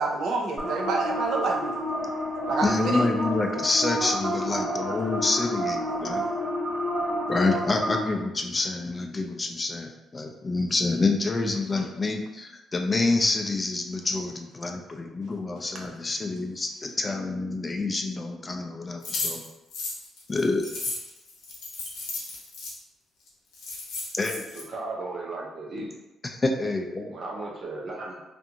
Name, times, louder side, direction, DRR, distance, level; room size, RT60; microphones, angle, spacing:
voice 1, 0.0-1.7 2.5-3.1, right 3 dB, 70° right, 1 dB, 0.4 m, -28 dB
sound 1, 0.6-8.0, equal, 25° right, 0.9 m, -29 dB
voice 2, 2.6-6.2 7.3-19.4 20.3-20.7 24.1-24.4 26.2-27.1, left 3 dB, 25° left, 3 dB, 0.3 m, -27 dB
sound 2, 19.0-22.7 23.3-23.4 23.5-24.6, left 3 dB, 85° left, 0.7 m, -34 dB
voice 3, 24.5-25.9 27.1-28.2, right 2 dB, 50° right, -2 dB, 0.7 m, -35 dB
2.5 x 2.4 x 2.7 m, 1.0 s
cardioid pair, 90°, 0 cm